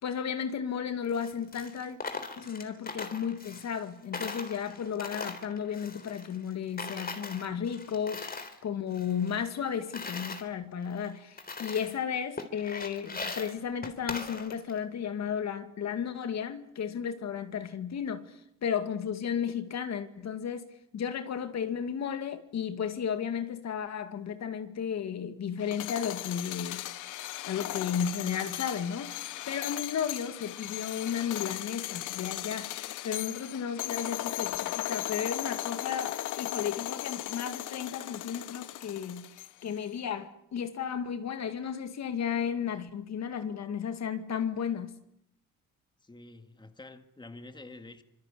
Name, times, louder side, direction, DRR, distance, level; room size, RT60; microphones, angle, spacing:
voice 1, 0.0-2.0 2.4-26.9 27.5-32.7 33.0-39.3 39.6-44.9, left 7 dB, 60° left, 2.4 m, -34 dB
Coin (dropping), 1.0-3.9 4.1-6.5 6.8-8.6 8.9-10.4 11.0-11.1 11.4-12.0 12.4-14.8, left 4 dB, 30° left, 3.7 m, -40 dB
sound 1, 25.6-39.7, left 15 dB, 85° left, 1.0 m, -37 dB
voice 2, 46.0-48.0, left 2 dB, 15° left, 2.0 m, -48 dB
26.0 x 22.0 x 8.6 m
cardioid pair, 90°, 30 cm